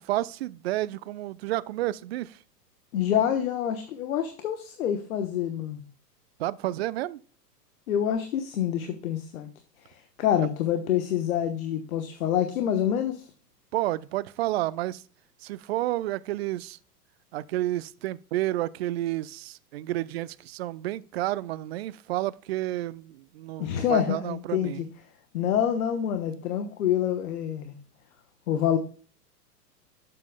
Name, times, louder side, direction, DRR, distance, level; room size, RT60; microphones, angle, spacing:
voice 1, 0.0-2.4 6.4-7.2 13.7-15.0 15.4-16.8 17.3-24.8, right 15 dB, 45° right, 0.4 m, -30 dB
voice 2, 2.9-5.8 7.9-9.5 9.8-13.3 23.6-24.9 25.3-27.7 28.5-28.8, left 10 dB, 60° left, 1.2 m, -27 dB
11.5 x 7.7 x 2.2 m
figure-of-eight pair, 105°, 48 cm